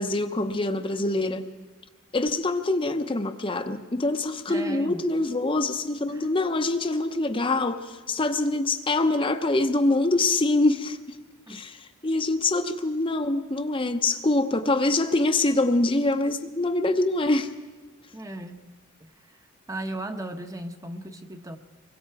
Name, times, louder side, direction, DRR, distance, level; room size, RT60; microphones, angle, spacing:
voice 1, 0.0-1.5 2.1-11.0 11.5-11.8 12.0-17.5, left 2 dB, 25° left, 7 dB, 0.8 m, -24 dB
voice 2, 4.5-5.0 6.1-6.3 11.5-11.6 18.1-18.6 19.0-19.1 19.7-21.6, right 1 dB, 15° right, 7 dB, 1.0 m, -36 dB
25.5 x 22.5 x 4.8 m, 1.3 s
head